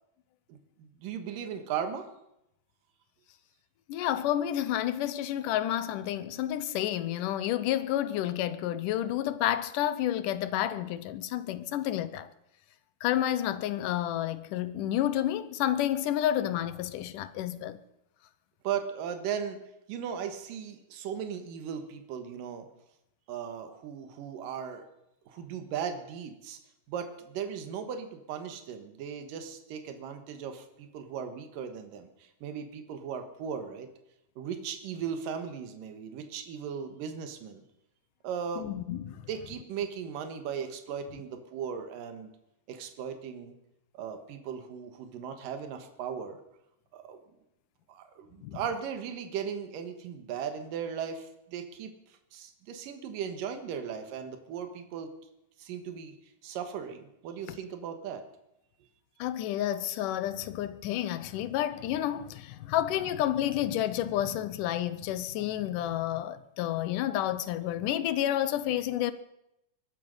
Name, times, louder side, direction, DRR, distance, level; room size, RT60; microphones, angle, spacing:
voice 1, 0.5-2.1 18.6-19.6 19.9-22.7 23.3-24.8 25.3-26.6 26.9-33.9 34.4-37.6 38.2-38.7 39.3-42.3 42.7-43.6 43.9-46.4 46.9-47.2 47.9-55.1 55.6-58.2, right 7 dB, 75° right, 3.1 m, -37 dB
voice 2, 3.9-12.3 13.0-17.8 38.6-39.3 48.4-48.6 57.5-57.6 59.2-69.1, left 12 dB, 75° left, 2.2 m, -30 dB
22.5 x 12.0 x 5.4 m
omnidirectional pair, 4.0 m